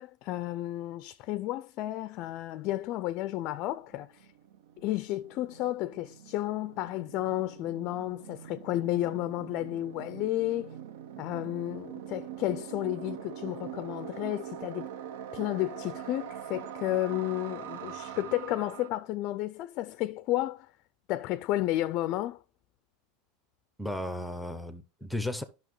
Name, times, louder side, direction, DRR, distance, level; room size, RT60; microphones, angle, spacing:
voice 1, 0.0-4.3 4.8-10.8 11.2-14.9 15.3-20.7 21.1-22.4, left 15 dB, 45° left, 0.4 m, -32 dB
sound 1, 3.4-3.5 3.6-18.9, right 10 dB, 80° right, 0.7 m, -43 dB
voice 2, 23.8-25.4, left 1 dB, ahead, 0.7 m, -34 dB
11.0 x 6.0 x 3.2 m
supercardioid pair, 145°, 0 cm